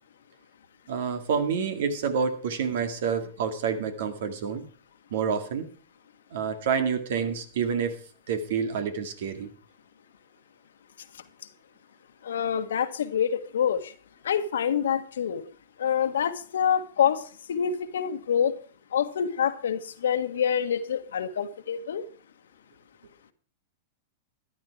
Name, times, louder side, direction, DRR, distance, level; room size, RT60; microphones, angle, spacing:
voice 1, 0.9-4.6 5.1-5.7 6.3-8.0 8.3-9.5, right 6 dB, 70° right, 9 dB, 2.3 m, -28 dB
voice 2, 12.2-13.9 14.2-15.4 15.8-17.2 17.5-18.5 18.9-22.0, left 8 dB, 80° left, 10 dB, 1.4 m, -26 dB
13.5 x 11.0 x 4.7 m, 0.40 s
hypercardioid pair, 120°, 0 cm